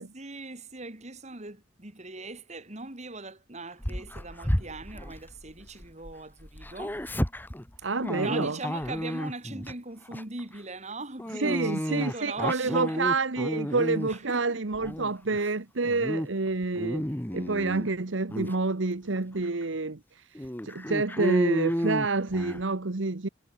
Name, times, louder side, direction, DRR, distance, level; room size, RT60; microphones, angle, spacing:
voice 1, 0.1-7.0 8.2-13.0 13.8-14.6 17.3-17.4, right 2 dB, 35° right, 3.0 m, -40 dB
Dog, 3.8-6.1 6.4-9.7 10.1-10.4 11.2-14.3 14.7-15.5 15.8-16.3 16.6-17.9 18.3-18.5 19.2-19.3 19.6-19.7 20.4-22.6, equal, 10° left, 1.4 m, -32 dB
voice 2, 7.8-8.6 11.4-20.0 20.6-23.3, right 3 dB, 75° right, 1.2 m, -28 dB
head